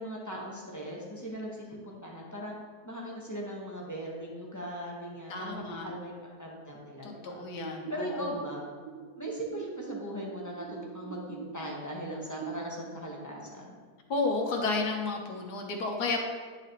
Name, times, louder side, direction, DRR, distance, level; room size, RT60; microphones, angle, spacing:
voice 1, 0.0-2.5 2.8-7.4 7.9-8.7 9.2-13.8, equal, 15° left, -3 dB, 1.1 m, -39 dB
voice 2, 5.3-5.9 7.0-8.4 14.1-16.2, left 3 dB, 85° left, 2 dB, 1.6 m, -32 dB
sound 1, 7.6-12.6, right 7 dB, 85° right, 1.1 m, -43 dB
10.5 x 5.9 x 3.0 m, 1.5 s
omnidirectional pair, 1.7 m